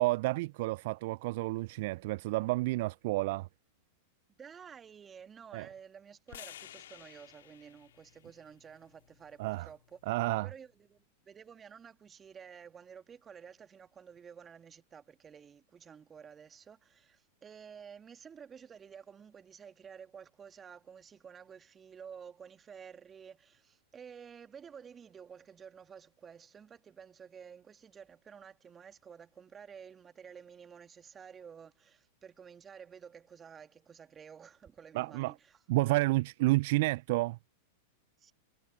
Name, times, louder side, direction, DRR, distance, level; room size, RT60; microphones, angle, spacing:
voice 1, 0.0-3.5 5.5-5.7 9.4-9.7 10.1-10.5 34.9-35.3 35.7-37.4, right 21 dB, 55° right, 0.3 m, -30 dB
voice 2, 4.4-10.0 10.4-35.6 38.2-38.3, right 7 dB, 25° right, 2.3 m, -52 dB
sound 1, 6.3-10.5, left 11 dB, 70° left, 1.9 m, -54 dB
hypercardioid pair, 95°, 0 cm